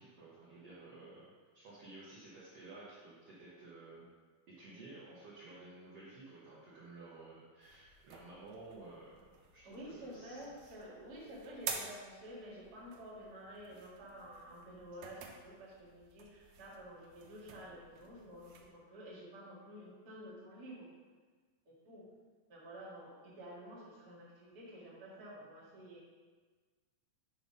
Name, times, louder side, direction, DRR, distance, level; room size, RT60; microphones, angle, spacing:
voice 1, 0.0-4.1 4.5-10.7, right 2 dB, 60° right, -8 dB, 1.8 m, -54 dB
sound 1, 7.6-18.7, right 6 dB, 85° right, 1.7 m, -50 dB
voice 2, 9.6-20.9 21.7-22.1 22.5-26.1, equal, 35° right, -7 dB, 1.7 m, -51 dB
8.2 x 3.5 x 5.3 m, 1.5 s
omnidirectional pair, 4.1 m